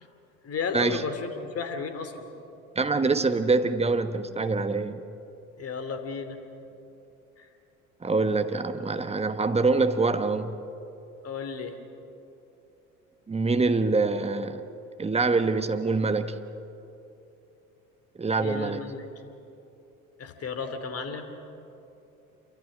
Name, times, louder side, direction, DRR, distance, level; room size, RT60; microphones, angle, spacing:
voice 1, 0.4-2.3 5.6-6.4 7.4-7.5 11.2-11.8 18.4-19.3 20.2-21.3, left 5 dB, 35° left, 8 dB, 2.8 m, -34 dB
voice 2, 2.8-5.0 8.0-10.6 13.3-14.6 15.0-16.3 18.2-18.8, right 3 dB, 15° right, 9 dB, 1.2 m, -25 dB
27.5 x 23.5 x 6.3 m, 2.9 s
figure-of-eight pair, 65°, 43 cm